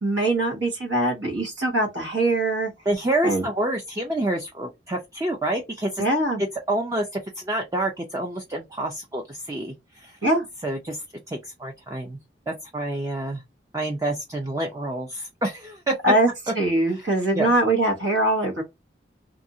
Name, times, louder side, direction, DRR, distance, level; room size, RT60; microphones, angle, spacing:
voice 1, 0.0-2.7 3.2-3.5 6.0-6.4 10.2-10.5 16.0-16.3 16.6-18.6, right 2 dB, 85° right, 1.4 m, -22 dB
voice 2, 2.9-6.0 6.7-7.1 7.4-10.2 10.6-12.2 12.5-13.4 13.7-15.9 16.5-16.6 17.0-17.1 17.3-17.5, right 1 dB, 20° right, 0.4 m, -28 dB
2.7 x 2.5 x 2.6 m
head